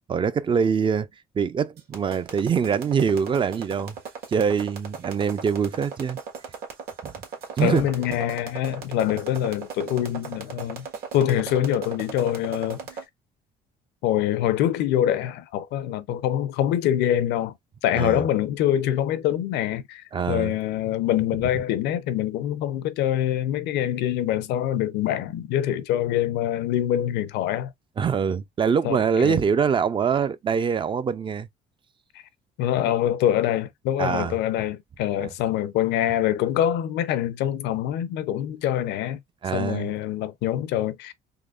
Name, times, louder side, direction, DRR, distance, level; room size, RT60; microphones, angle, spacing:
voice 1, 0.1-1.1 1.3-4.0 4.3-6.2 7.0-7.1 7.6-7.9 17.9-18.2 20.1-20.5 28.0-31.5 34.0-34.3 35.2-35.3 39.4-39.9, right 6 dB, 30° right, 0.4 m, -24 dB
sound 1, 1.8-13.0, right 6 dB, 70° right, 1.5 m, -37 dB
voice 2, 7.6-10.9 11.1-12.8 14.0-17.5 17.8-27.7 28.8-29.4 32.6-39.2 39.5-41.1, left 11 dB, 85° left, 0.6 m, -25 dB
3.8 x 3.0 x 2.4 m
cardioid pair, 110°, 17 cm